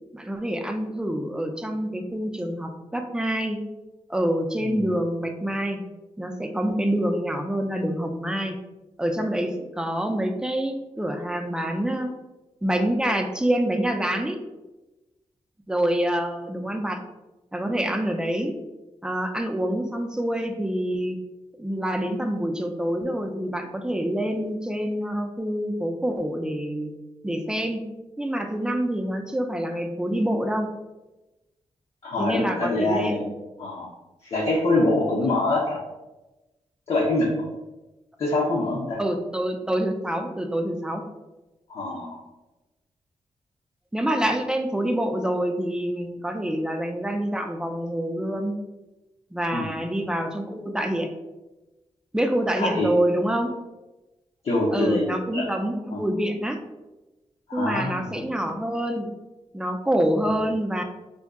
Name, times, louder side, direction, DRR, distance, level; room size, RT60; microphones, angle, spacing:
voice 1, 0.1-3.6 4.1-5.8 6.2-8.6 9.0-12.1 12.6-14.4 15.7-17.0 17.5-18.6 19.0-21.2 21.6-26.9 27.2-27.8 28.2-30.7 32.2-33.2 35.2-35.3 39.0-41.0 43.9-48.6 49.3-51.1 52.1-53.5 54.7-56.6 57.5-59.1 59.5-60.8, right 1 dB, 5° right, 4 dB, 0.3 m, -26 dB
voice 2, 32.0-33.3 33.6-33.9 34.2-35.8 36.9-37.3 38.2-39.0 41.7-42.2 49.5-49.7 52.6-52.9 54.4-55.1 55.3-55.4 55.9-56.0 57.5-58.3, left 2 dB, 60° left, -6 dB, 0.6 m, -24 dB
2.6 x 2.2 x 3.5 m, 1.1 s
cardioid pair, 90°, 11 cm